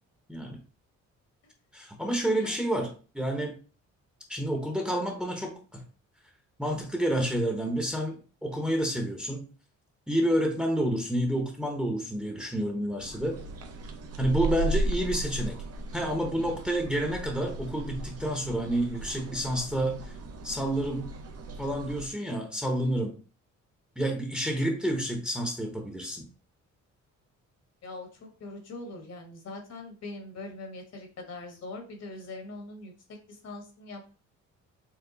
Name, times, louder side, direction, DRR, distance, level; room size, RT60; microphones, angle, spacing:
voice 1, 1.7-3.5 4.3-5.8 6.6-9.5 10.1-13.4 14.2-15.6 15.9-20.1 20.4-21.1 21.6-23.2 24.0-26.3, right 1 dB, 5° right, 2 dB, 0.9 m, -29 dB
sound 1, 13.0-22.1, right 2 dB, 55° right, 0.8 m, -36 dB
voice 2, 27.8-32.9 33.3-34.1, left 2 dB, 55° left, 3 dB, 1.5 m, -42 dB
4.6 x 2.4 x 3.9 m, 0.35 s
cardioid pair, 90°, 30 cm